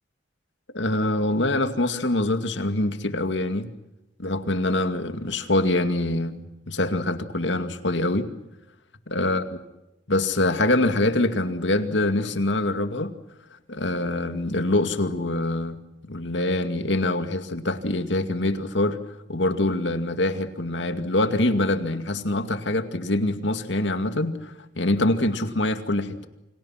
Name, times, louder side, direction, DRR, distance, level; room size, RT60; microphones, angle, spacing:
voice 1, 0.7-3.7 4.2-6.4 6.7-8.3 9.1-9.6 10.1-13.1 13.7-15.8 16.1-19.0 19.3-26.3, left 2 dB, 75° left, 9 dB, 2.4 m, -24 dB
29.5 x 26.5 x 5.9 m, 0.94 s
head